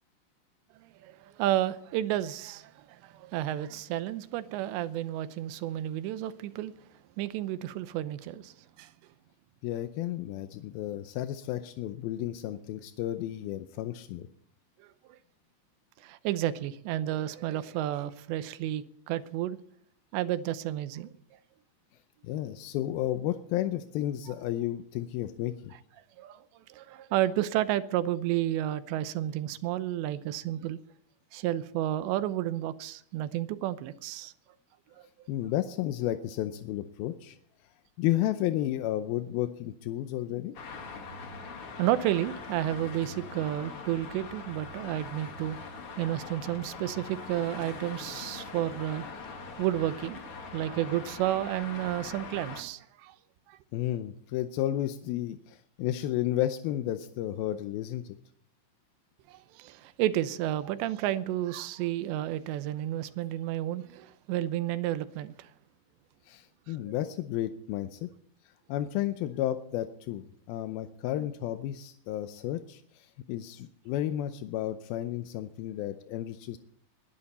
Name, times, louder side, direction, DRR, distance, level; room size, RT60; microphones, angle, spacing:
voice 1, 0.8-6.7 7.2-8.9 16.0-19.6 20.1-21.2 26.2-26.4 26.7-30.8 31.3-34.3 35.0-35.1 41.8-45.6 46.0-49.0 49.6-53.2 53.5-53.6 59.3-65.5, right 13 dB, 85° right, 3.0 m, -31 dB
voice 2, 9.6-14.3 22.2-25.7 35.3-37.4 38.0-40.5 53.7-58.2 66.3-68.1 68.7-76.6, left 13 dB, 80° left, 2.2 m, -32 dB
Traffic noise roadway noise, 40.5-52.6, left 4 dB, 55° left, 1.6 m, -42 dB
21.5 x 11.0 x 4.2 m
omnidirectional pair, 5.0 m